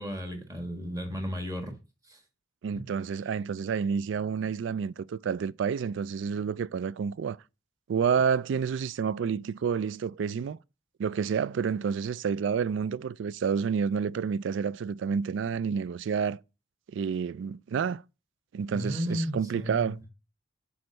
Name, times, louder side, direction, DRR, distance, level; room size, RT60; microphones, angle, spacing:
voice 1, 0.0-1.7 2.0-2.2 2.8-2.9 18.7-20.0, equal, 20° right, 1.3 m, -34 dB
voice 2, 2.6-7.4 7.9-10.6 11.0-16.4 16.9-18.0 18.5-20.0, right 6 dB, 70° right, 0.3 m, -29 dB
6.3 x 4.2 x 6.5 m
head